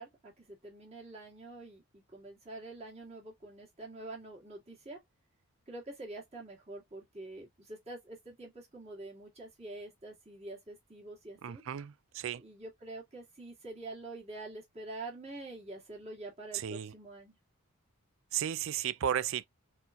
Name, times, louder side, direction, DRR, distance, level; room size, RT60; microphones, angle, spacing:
voice 1, 0.0-5.0 5.7-11.6 12.4-17.4, right 2 dB, 30° right, 2.1 m, -46 dB
voice 2, 11.4-12.4 16.6-16.9 18.3-19.4, right 9 dB, 60° right, 0.3 m, -34 dB
4.3 x 4.1 x 2.4 m
head